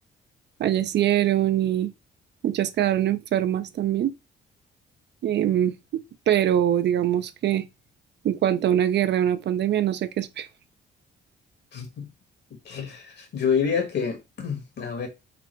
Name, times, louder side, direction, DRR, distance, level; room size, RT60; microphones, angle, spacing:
voice 1, 0.6-1.9 2.4-4.1 5.2-5.7 6.3-7.6 8.2-10.5, right 11 dB, 60° right, 0.5 m, -23 dB
voice 2, 11.7-12.1 12.7-15.1, left 6 dB, 60° left, 1.6 m, -28 dB
3.8 x 2.2 x 4.4 m
cardioid pair, 90°, 20 cm